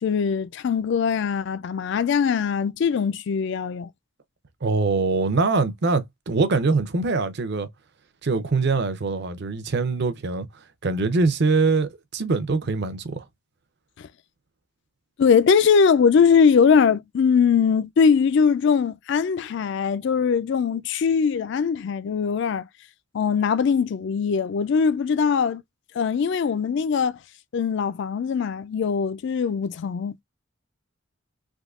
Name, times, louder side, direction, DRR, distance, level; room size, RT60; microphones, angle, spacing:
voice 1, 0.0-3.9 14.0-14.1 15.2-22.7 23.1-25.6 25.9-27.2 27.5-30.1, left 6 dB, 55° left, 0.3 m, -21 dB
voice 2, 4.6-7.7 8.2-10.5 10.8-13.2, right 3 dB, 50° right, 0.6 m, -23 dB
3.5 x 2.6 x 2.4 m
head